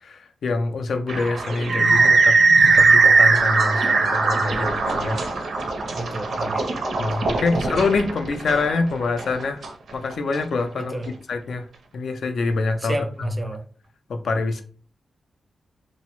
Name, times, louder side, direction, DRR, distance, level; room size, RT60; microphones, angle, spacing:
voice 1, 0.0-2.4 2.7-5.2 7.0-9.6 9.9-10.9 11.3-13.3 14.1-14.6, left 3 dB, 70° left, 7 dB, 0.3 m, -25 dB
sound 1, 1.1-10.4, right 4 dB, 70° right, 0.5 m, -19 dB
voice 2, 5.9-7.1 10.7-11.1 12.8-13.6, right 1 dB, 15° right, 4 dB, 0.4 m, -31 dB
2.7 x 2.0 x 2.9 m, 0.43 s
wide cardioid pair, 140°, 0 cm